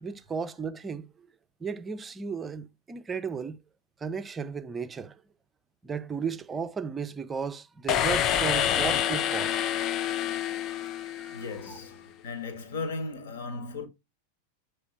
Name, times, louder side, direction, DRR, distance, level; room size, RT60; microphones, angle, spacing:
voice 1, 0.0-1.3 1.6-3.6 4.0-5.2 5.8-9.5 10.6-11.8, right 5 dB, 15° right, 0.5 m, -35 dB
sound 1, 7.9-11.7, left 10 dB, 35° left, 0.5 m, -27 dB
voice 2, 11.3-13.9, left 3 dB, 60° left, 1.7 m, -36 dB
7.2 x 3.3 x 4.7 m
figure-of-eight pair, 90°, 0 cm